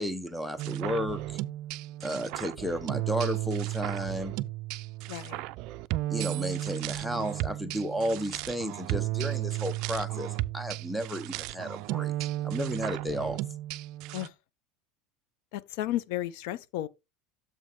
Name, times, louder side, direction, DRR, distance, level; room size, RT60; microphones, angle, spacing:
voice 1, 0.0-1.4 2.0-4.3 6.1-12.1 12.4-13.4, equal, ahead, 0.7 m, -33 dB
sound 1, 0.6-14.3, right 16 dB, 55° right, 0.4 m, -34 dB
voice 2, 5.1-5.4 14.1-14.3 15.5-16.9, left 14 dB, 70° left, 0.6 m, -33 dB
7.4 x 5.2 x 3.6 m
supercardioid pair, 150°, 0 cm